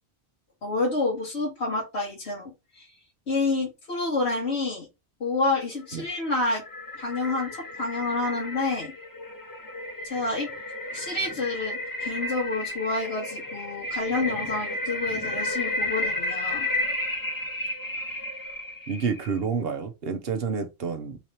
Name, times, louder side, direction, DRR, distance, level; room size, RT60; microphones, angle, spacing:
voice 1, 0.6-2.9 3.3-4.9 5.2-6.6 7.0-8.9 10.0-10.5 10.9-16.7, left 3 dB, 75° left, 1.7 m, -28 dB
sound 1, 6.0-19.4, left 1 dB, 20° left, 0.7 m, -32 dB
voice 2, 18.9-21.2, right 5 dB, 65° right, 1.0 m, -29 dB
3.9 x 2.9 x 4.5 m
omnidirectional pair, 1.1 m